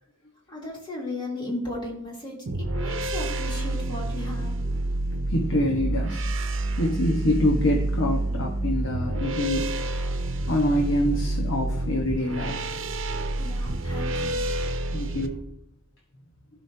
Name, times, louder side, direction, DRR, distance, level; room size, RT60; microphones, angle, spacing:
voice 1, 0.5-2.4 2.7-4.5 13.4-14.4, left 1 dB, 25° left, -4 dB, 2.9 m, -35 dB
sound 1, 2.5-15.3, right 2 dB, 65° right, 0.9 m, -28 dB
voice 2, 5.3-10.0 10.5-12.7 14.9-15.4, left 1 dB, 65° left, -1 dB, 1.2 m, -26 dB
15.5 x 5.4 x 2.8 m, 0.82 s
head